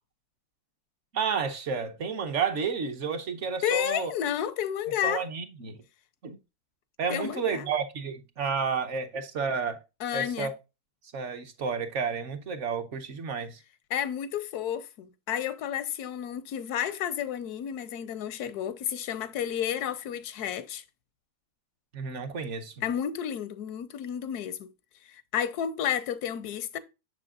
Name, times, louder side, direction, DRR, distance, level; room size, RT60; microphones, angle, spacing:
voice 1, 1.1-4.1 5.0-5.8 6.2-6.4 7.0-9.8 10.1-10.6 11.1-13.6 21.9-22.7, right 6 dB, 55° right, 1.0 m, -31 dB
voice 2, 3.6-5.2 7.1-7.7 10.0-10.5 13.9-20.8 22.8-24.7 25.1-26.8, left 9 dB, 85° left, 1.2 m, -31 dB
6.8 x 6.6 x 2.4 m
omnidirectional pair, 1.6 m